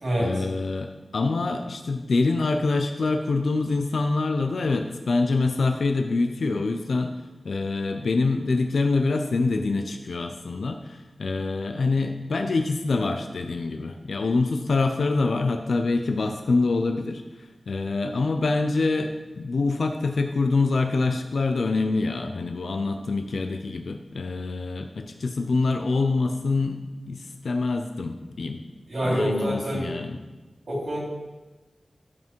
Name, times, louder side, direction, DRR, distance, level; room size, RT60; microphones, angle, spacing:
voice 1, 0.2-7.1 7.4-28.6 29.0-30.2, left 3 dB, 80° left, 5 dB, 0.6 m, -25 dB
voice 2, 28.9-29.9 30.7-31.0, equal, 70° right, -4 dB, 3.5 m, -26 dB
12.0 x 5.9 x 4.6 m, 1.2 s
wide cardioid pair, 90°, 0 cm